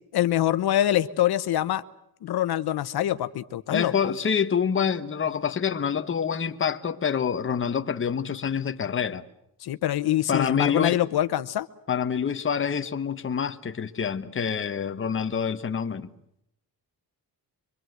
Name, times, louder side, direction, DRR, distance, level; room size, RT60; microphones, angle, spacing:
voice 1, 0.1-1.8 2.2-4.1 9.6-11.7, left 12 dB, 80° left, 1.0 m, -25 dB
voice 2, 3.7-9.2 10.3-11.0 11.9-16.1, left 7 dB, 30° left, 1.2 m, -26 dB
24.5 x 24.5 x 7.9 m
wide cardioid pair, 155°, 38 cm